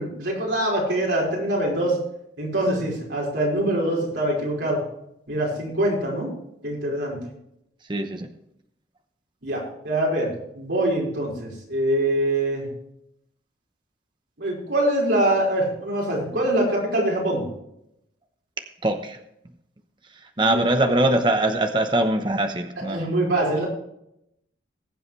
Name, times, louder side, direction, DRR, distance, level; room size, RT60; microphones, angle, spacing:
voice 1, 0.0-2.0 2.4-4.8 5.3-6.3 6.6-7.2 9.4-12.7 14.4-17.5 20.4-20.6 22.9-23.7, right 1 dB, 80° right, -4 dB, 5.0 m, -24 dB
voice 2, 7.9-8.3 18.8-19.2 20.4-23.1, right 1 dB, 25° right, 6 dB, 0.9 m, -22 dB
20.5 x 7.8 x 3.2 m, 0.79 s
head